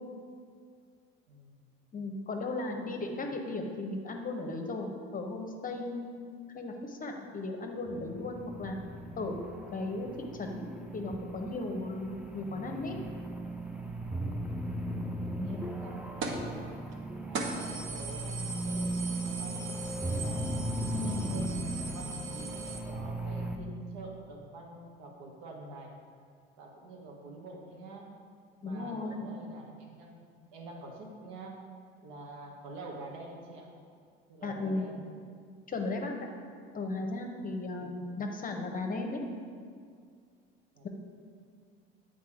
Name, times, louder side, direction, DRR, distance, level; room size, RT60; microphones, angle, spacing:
voice 1, 1.3-1.6 2.5-3.3 15.4-16.7 17.2-20.5 21.0-25.9 26.6-28.2 28.6-31.6 32.0-33.7 34.3-35.0 36.8-36.9 37.8-38.1 40.7-40.9, right 2 dB, 65° right, 0 dB, 1.4 m, -47 dB
voice 2, 1.9-6.2 6.5-8.8 9.2-9.4 9.7-13.0 15.4-15.7 20.9-21.2 28.6-29.3 34.4-34.9 35.7-36.1 36.7-39.2, left 2 dB, 30° left, 3 dB, 0.9 m, -36 dB
sound 1, 7.9-23.6, right 1 dB, 5° right, 0.7 m, -37 dB
sound 2, 16.2-16.5 16.9-17.0 17.3-22.8, right 4 dB, 45° right, 1.1 m, -39 dB
8.3 x 4.1 x 4.9 m, 2.1 s
hypercardioid pair, 70°, 30 cm